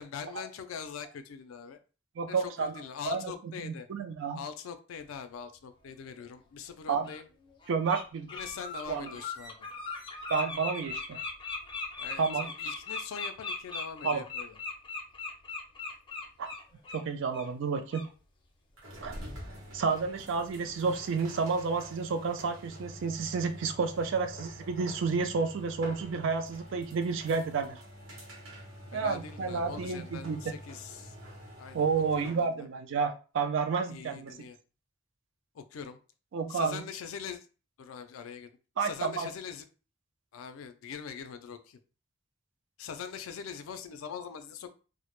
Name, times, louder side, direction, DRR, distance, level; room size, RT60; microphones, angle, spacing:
voice 1, 0.0-1.8 2.3-3.9 4.3-7.3 8.3-9.6 12.0-14.6 28.9-31.2 31.6-31.9 32.1-32.7 33.9-34.6 35.5-36.0 36.5-37.5 37.8-38.5 38.8-39.7 40.3-41.8 42.8-44.7, left 7 dB, 80° left, 0.4 m, -42 dB
voice 2, 2.2-2.7 3.0-3.3 3.6-4.4 6.9-7.1 7.7-8.3 8.9-9.1 10.3-11.2 12.2-12.5 14.0-14.2 16.4-16.5 16.9-18.1 19.0-19.2 19.7-27.8 28.9-30.5 31.7-34.3 36.3-36.8 38.8-39.3, right 5 dB, 65° right, 0.4 m, -30 dB
Bird, 6.2-6.3 7.0-7.2 7.6-8.0 8.3-17.0 17.3-17.5 17.9-18.1, left 4 dB, 25° left, 0.5 m, -38 dB
sound 1, 18.8-32.5, equal, 80° right, 0.9 m, -47 dB
2.1 x 2.0 x 2.9 m
head